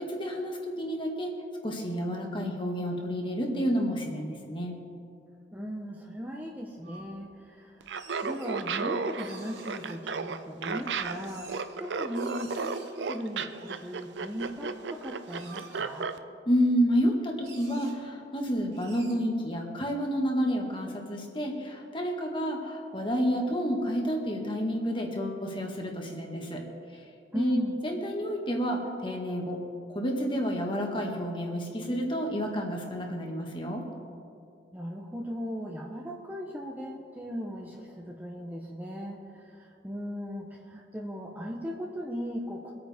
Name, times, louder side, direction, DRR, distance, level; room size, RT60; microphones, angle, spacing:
voice 1, 0.0-1.4 1.6-4.8 16.5-26.6 27.3-29.6 29.9-33.9, equal, 30° left, 1 dB, 1.7 m, -30 dB
voice 2, 5.5-16.1 27.3-27.8 34.7-42.7, equal, 10° right, 0 dB, 0.9 m, -38 dB
sound 1, 6.8-7.1 7.8-8.5 9.2-10.0 10.7-11.8 12.1-12.9 13.4-14.5 15.1-15.8 16.8-16.9 17.1-17.2 17.4-17.9 18.7-19.2, right 4 dB, 70° right, 3.3 m, -51 dB
Laughter, 7.8-16.2, right 5 dB, 90° right, 0.6 m, -33 dB
24.5 x 9.0 x 3.6 m, 2.5 s
head